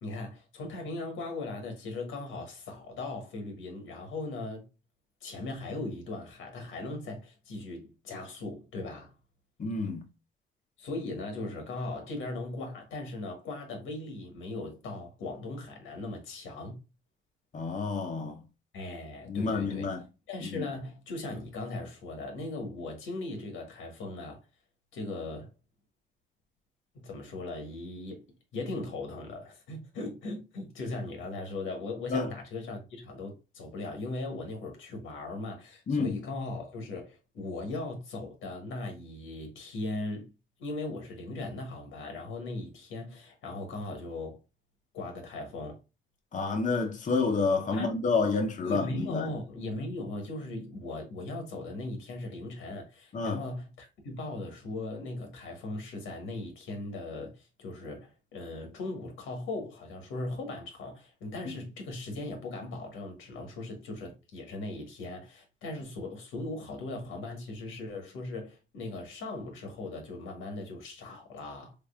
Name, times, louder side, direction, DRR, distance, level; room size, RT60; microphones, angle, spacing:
voice 1, 0.0-4.6 5.2-9.1 10.8-16.8 18.7-20.0 20.3-24.4 24.9-25.5 26.9-28.2 28.5-40.3 40.6-44.4 44.9-45.8 47.7-47.9 48.6-71.7, left 2 dB, 85° left, 1.3 m, -38 dB
voice 2, 9.6-10.0 17.5-18.4 19.3-20.0 32.1-32.3 35.9-36.2 46.3-48.9 49.1-49.3 53.1-53.4, left 4 dB, 40° left, 0.7 m, -29 dB
3.5 x 3.4 x 2.3 m
cardioid pair, 90°, 20 cm